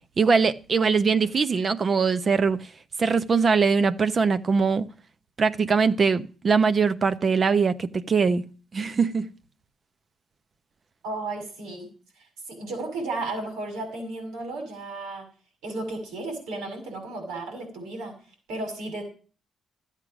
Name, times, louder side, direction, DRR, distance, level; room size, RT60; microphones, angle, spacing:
voice 1, 0.2-2.6 3.0-4.9 5.4-8.4 8.7-9.3, right 5 dB, 45° right, 0.9 m, -22 dB
voice 2, 11.0-11.9 12.5-15.3 15.6-18.1 18.5-19.0, right 2 dB, 90° right, 6.2 m, -33 dB
13.0 x 8.4 x 6.2 m
supercardioid pair, 60°, 0 cm